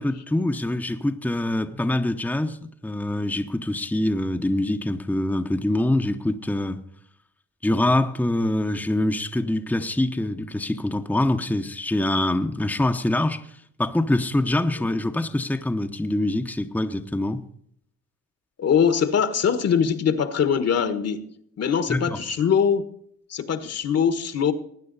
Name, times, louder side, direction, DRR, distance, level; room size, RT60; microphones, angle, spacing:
voice 1, 0.0-6.8 7.6-13.4 13.8-17.4 21.9-22.2, left 1 dB, 5° left, 0.9 m, -24 dB
voice 2, 18.6-21.2 21.6-22.8 23.3-24.5, left 7 dB, 55° left, 1.5 m, -22 dB
20.0 x 9.2 x 4.1 m
cardioid pair, 90°, 30 cm